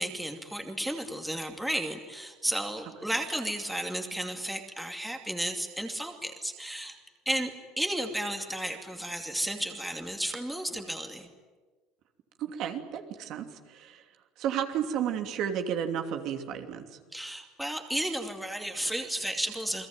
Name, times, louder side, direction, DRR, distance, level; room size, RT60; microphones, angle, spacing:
voice 1, 0.0-7.0 7.3-11.3 17.1-19.9, right 1 dB, 5° right, 4 dB, 2.6 m, -33 dB
voice 2, 12.4-14.0 14.4-16.8, right 9 dB, 55° right, 5 dB, 2.8 m, -32 dB
29.5 x 21.0 x 9.1 m, 1.3 s
cardioid pair, 140°, 0 cm